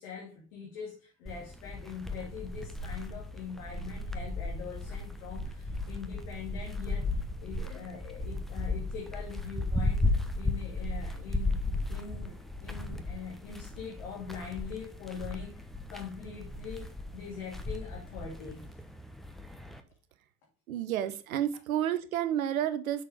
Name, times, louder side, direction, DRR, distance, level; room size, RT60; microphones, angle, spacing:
voice 1, 0.0-10.0 10.3-11.6 11.9-18.7, left 6 dB, 65° left, 2.6 m, -43 dB
sound 1, 1.3-19.8, left 2 dB, ahead, 1.0 m, -35 dB
voice 2, 20.7-23.0, right 11 dB, 75° right, 0.9 m, -30 dB
6.7 x 6.3 x 5.0 m
figure-of-eight pair, 60°, 42 cm